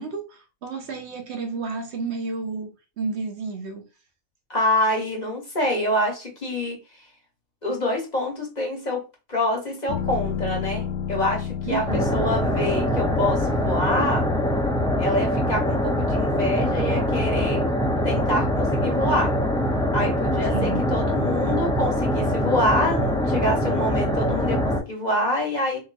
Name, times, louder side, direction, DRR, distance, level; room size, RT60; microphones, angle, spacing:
voice 1, 0.0-3.9 11.6-12.3 20.5-20.8, right 4 dB, 65° right, 0.9 m, -31 dB
voice 2, 4.5-6.8 7.6-9.0 9.3-14.3 15.0-17.6 18.0-19.3 19.9-25.8, left 1 dB, 35° left, 1.2 m, -26 dB
sound 1, 9.9-21.4 21.7-21.8, left 8 dB, 70° left, 0.8 m, -35 dB
sound 2, 11.9-24.8, equal, 5° left, 0.3 m, -23 dB
3.7 x 2.9 x 2.5 m
omnidirectional pair, 1.3 m